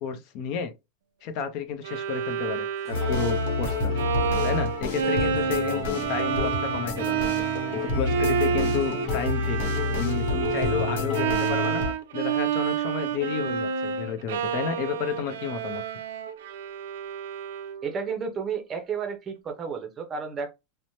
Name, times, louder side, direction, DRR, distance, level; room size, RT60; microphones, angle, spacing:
voice 1, 0.0-0.7 1.2-3.9 4.4-7.2 7.7-9.7 10.0-11.8 12.1-15.8, left 7 dB, 50° left, 0.6 m, -31 dB
Bowed string instrument, 1.8-17.9, right 8 dB, 85° right, 0.4 m, -29 dB
sound 1, 2.8-3.2 3.7-11.3, left 5 dB, 20° left, 1.0 m, -37 dB
sound 2, 2.9-11.9, left 4 dB, 80° left, 0.9 m, -29 dB
voice 2, 17.8-20.5, right 6 dB, 20° right, 0.6 m, -32 dB
3.0 x 2.1 x 2.7 m
supercardioid pair, 150°, 0 cm